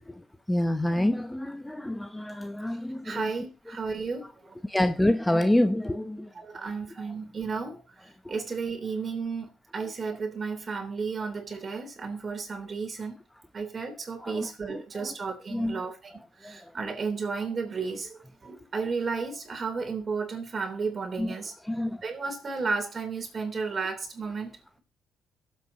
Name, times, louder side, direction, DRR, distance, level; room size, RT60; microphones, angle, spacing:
voice 1, 0.0-3.3 4.6-6.3 7.0-7.1 8.2-8.3 14.2-15.2 15.5-15.8 16.4-16.9 21.2-21.4 21.6-22.0, left 1 dB, 10° left, 0.7 m, -28 dB
voice 2, 3.0-4.3 6.3-7.8 8.3-13.2 13.5-16.1 16.4-21.5 22.0-24.5, right 4 dB, 40° right, 3.4 m, -33 dB
23.0 x 7.9 x 2.9 m
cardioid pair, 90°, 0 cm